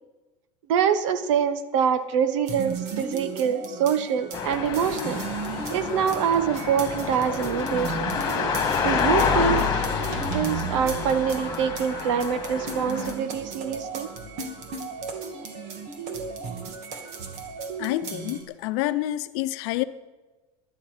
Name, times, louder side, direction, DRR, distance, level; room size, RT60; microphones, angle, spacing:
voice 1, 0.7-5.2 5.7-8.1 8.8-9.6 10.0-14.1, right 7 dB, 85° right, 12 dB, 1.3 m, -25 dB
sound 1, 2.5-18.4, right 4 dB, 50° right, 2.3 m, -35 dB
sound 2, 4.3-13.1, left 6 dB, 25° left, 2.3 m, -28 dB
voice 2, 17.8-19.8, left 15 dB, 65° left, 11 dB, 0.8 m, -28 dB
19.5 x 12.0 x 5.1 m, 1.2 s
cardioid pair, 160°, 15 cm